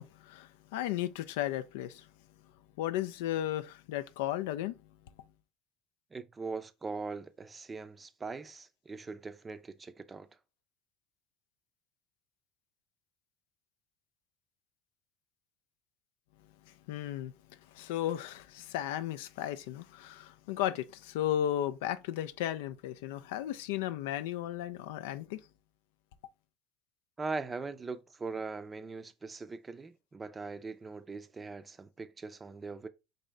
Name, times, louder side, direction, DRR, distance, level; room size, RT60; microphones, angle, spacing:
voice 1, 0.0-2.0 2.8-4.7 16.9-17.3 17.7-25.4, left 12 dB, 80° left, 0.3 m, -35 dB
voice 2, 6.1-10.3 27.2-32.9, right 4 dB, 20° right, 0.5 m, -41 dB
4.0 x 2.7 x 3.3 m
supercardioid pair, 90°, 0 cm